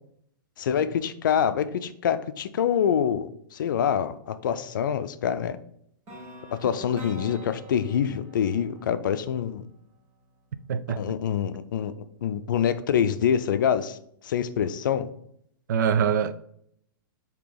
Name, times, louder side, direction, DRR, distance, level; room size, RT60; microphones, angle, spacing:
voice 1, 0.6-5.6 6.5-9.7 11.0-11.9 12.2-14.0 14.2-15.1, left 8 dB, 60° left, 0.5 m, -25 dB
sound 1, 6.1-10.0, right 2 dB, 25° right, 1.3 m, -45 dB
voice 2, 10.7-11.0 15.7-16.3, right 7 dB, 55° right, 0.4 m, -23 dB
8.3 x 2.9 x 3.9 m
hypercardioid pair, 170°, 12 cm